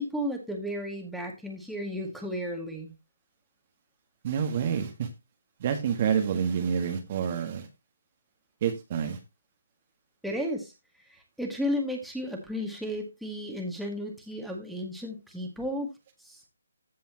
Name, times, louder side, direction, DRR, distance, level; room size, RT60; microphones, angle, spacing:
voice 1, 0.0-2.9 10.2-10.7 11.1-15.9 16.2-16.4, equal, ahead, 0 dB, 2.0 m, -33 dB
voice 2, 4.2-5.1 5.6-7.7 8.6-9.2, right 7 dB, 35° right, 6 dB, 1.5 m, -28 dB
15.5 x 5.4 x 2.9 m, 0.22 s
figure-of-eight pair, 150°, 0 cm